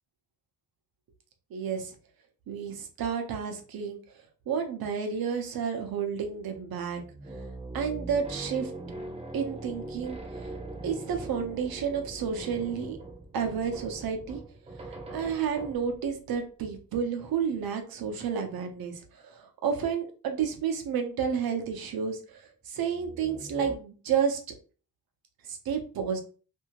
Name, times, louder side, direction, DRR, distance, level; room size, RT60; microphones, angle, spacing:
voice 1, 1.5-1.9 2.5-4.0 4.5-7.0 7.7-8.7 9.3-10.5 10.8-13.0 13.3-14.4 14.8-24.4 25.4-26.2, right 7 dB, 70° right, 4 dB, 0.8 m, -31 dB
sound 1, 6.3-16.2 21.5-22.2 22.9-23.7, right 2 dB, 15° right, 0.6 m, -42 dB
2.7 x 2.7 x 2.9 m, 0.39 s
wide cardioid pair, 140°, 37 cm